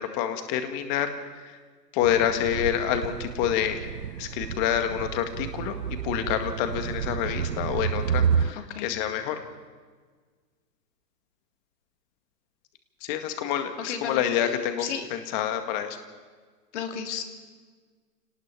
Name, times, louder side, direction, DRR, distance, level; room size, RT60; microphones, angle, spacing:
voice 1, 0.0-1.6 1.9-9.4 13.0-16.0, left 10 dB, 25° left, 7 dB, 2.0 m, -28 dB
sound 1, 2.0-8.5, right 7 dB, 80° right, 0.8 m, -30 dB
voice 2, 8.5-8.9 13.8-14.5 14.8-15.1 16.7-17.2, left 7 dB, 45° left, 5 dB, 3.1 m, -34 dB
26.5 x 19.0 x 6.1 m, 1.5 s
hypercardioid pair, 135°, 49 cm